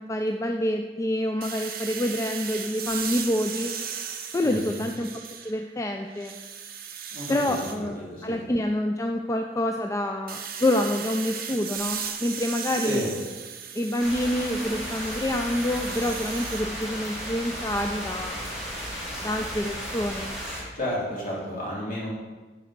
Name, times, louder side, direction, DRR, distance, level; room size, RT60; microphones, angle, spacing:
voice 1, 0.0-3.7 4.3-5.1 5.4-6.4 7.3-8.0 8.2-13.0 13.7-18.7 19.2-20.3, left 1 dB, 15° left, 4 dB, 0.4 m, -27 dB
sound 1, 1.4-5.7 6.1-7.8 10.3-16.6, right 7 dB, 55° right, 0.9 m, -36 dB
voice 2, 4.4-4.8 7.1-7.6 8.0-8.4 12.8-13.1 20.7-22.1, equal, 50° left, -6 dB, 3.0 m, -31 dB
sound 2, 14.0-20.6, equal, ahead, 2.9 m, -34 dB
7.7 x 4.9 x 6.6 m, 1.3 s
head